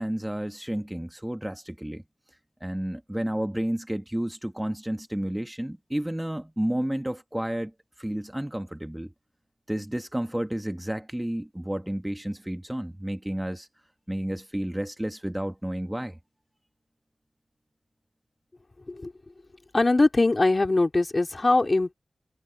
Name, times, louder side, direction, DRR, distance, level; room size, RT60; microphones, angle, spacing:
voice 1, 0.0-2.0 2.6-7.7 8.0-9.1 9.7-13.7 14.1-16.2, right 1 dB, 10° right, 1.5 m, -31 dB
voice 2, 19.7-21.9, left 2 dB, 40° left, 3.7 m, -22 dB
cardioid pair, 60°, 0 cm